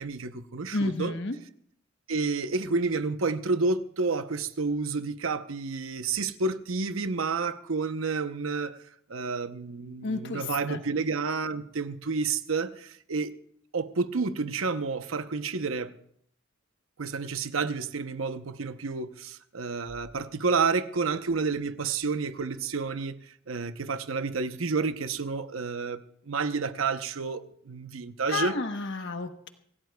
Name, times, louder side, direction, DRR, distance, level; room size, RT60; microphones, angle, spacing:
voice 1, 0.0-1.2 2.1-8.8 9.1-13.3 13.7-15.9 17.0-23.2 23.5-28.5, right 4 dB, 80° right, 0.8 m, -30 dB
voice 2, 0.7-1.4 10.0-10.8 28.3-29.5, left 3 dB, 60° left, 1.1 m, -31 dB
25.5 x 16.5 x 2.3 m
head